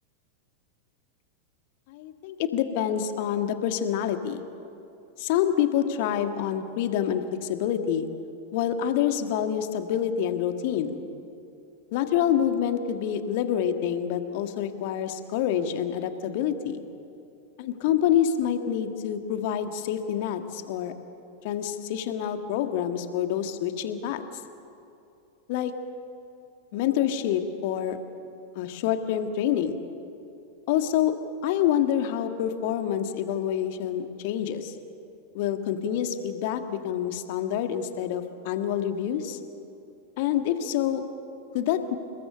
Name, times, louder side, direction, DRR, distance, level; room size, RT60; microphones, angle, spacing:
voice 1, 1.9-4.4 5.2-8.1 8.5-11.0 11.9-16.8 17.6-20.9 21.4-24.2 25.5-25.7 26.7-28.0 28.5-29.8 30.7-31.1 31.4-34.7 35.3-39.4 40.2-41.0 41.5-42.0, left 9 dB, 50° left, 7 dB, 1.7 m, -27 dB
29.5 x 19.5 x 6.8 m, 2.7 s
figure-of-eight pair, 90°, 0 cm